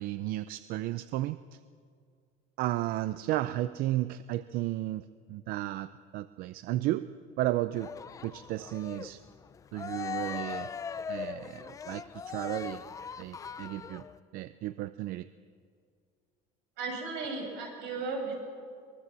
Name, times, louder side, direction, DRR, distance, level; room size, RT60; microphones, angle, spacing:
voice 1, 0.0-1.6 2.6-7.1 7.4-7.9 8.2-9.2 9.7-10.7 11.1-12.8 13.2-14.1 14.3-15.3, right 15 dB, 55° right, 14 dB, 0.6 m, -33 dB
Cheering, 7.7-14.2, left 7 dB, 20° left, 0.5 m, -40 dB
voice 2, 16.8-18.3, right 4 dB, 75° right, 1 dB, 8.0 m, -35 dB
23.5 x 21.5 x 7.6 m, 2.2 s
cardioid pair, 155°, 18 cm